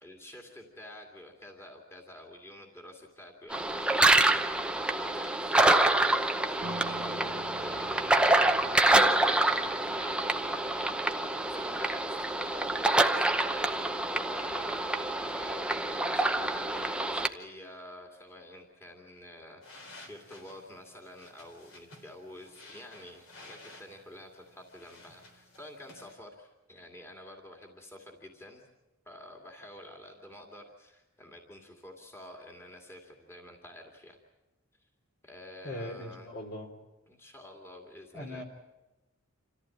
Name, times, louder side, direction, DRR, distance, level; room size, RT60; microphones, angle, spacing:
voice 1, 0.0-7.3 7.6-28.7 29.1-34.2 35.2-36.3 37.1-38.4, left 1 dB, 10° left, 1 dB, 2.4 m, -49 dB
sound 1, 3.5-17.3, right 2 dB, 5° right, 0.8 m, -26 dB
Piano, 6.6-11.9, right 2 dB, 65° right, 1.4 m, -48 dB
sound 2, 19.6-26.1, left 2 dB, 65° left, 3.7 m, -53 dB
voice 2, 35.6-36.7 38.1-38.4, left 1 dB, 50° left, 3 dB, 3.3 m, -39 dB
27.5 x 14.5 x 8.6 m, 1.0 s
head